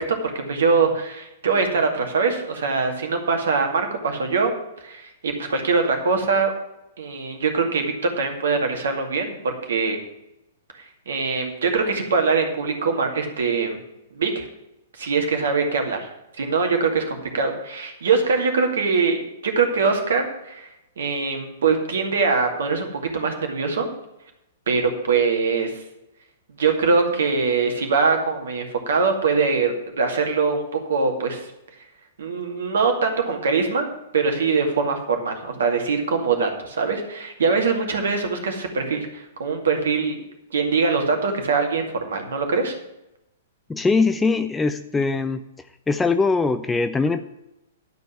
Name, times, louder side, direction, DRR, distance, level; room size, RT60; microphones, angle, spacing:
voice 1, 0.1-4.5 4.8-6.5 7.0-10.0 11.1-13.8 14.1-14.5 15.0-16.1 16.4-20.7 21.0-23.9 24.7-25.8 26.6-31.5 32.2-33.9 34.1-40.2 40.5-42.7, right 4 dB, 60° right, 4 dB, 2.3 m, -23 dB
voice 2, 43.7-45.4 45.9-47.2, left 4 dB, 10° left, 9 dB, 0.6 m, -21 dB
12.0 x 5.4 x 8.4 m, 0.88 s
figure-of-eight pair, 110°, 0 cm